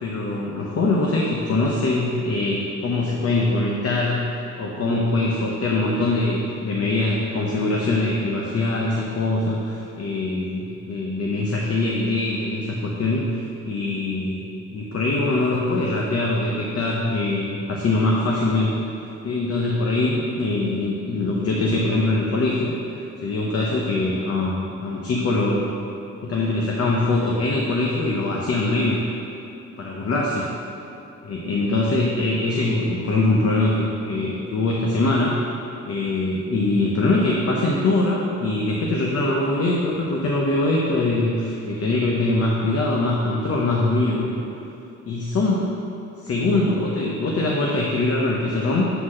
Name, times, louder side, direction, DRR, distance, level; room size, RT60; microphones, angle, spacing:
voice 1, 0.0-18.9 19.2-22.7 23.2-25.7 26.2-29.0 29.8-30.5 31.2-35.4 35.9-44.4 45.1-45.7 46.2-48.9, left 2 dB, 50° left, -2 dB, 0.8 m, -23 dB
7.9 x 4.1 x 6.3 m, 2.7 s
wide cardioid pair, 155°, 31 cm